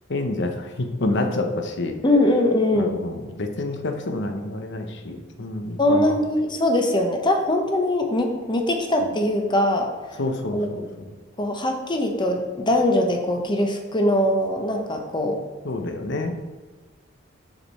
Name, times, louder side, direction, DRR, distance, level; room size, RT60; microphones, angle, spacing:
voice 1, 0.1-2.0 2.7-6.1 10.2-11.1 15.6-16.3, left 2 dB, 60° left, 5 dB, 0.9 m, -28 dB
voice 2, 2.0-3.0 5.8-9.9 10.5-10.7 11.4-15.4, left 1 dB, 25° left, 4 dB, 0.9 m, -21 dB
6.4 x 6.4 x 4.2 m, 1.4 s
head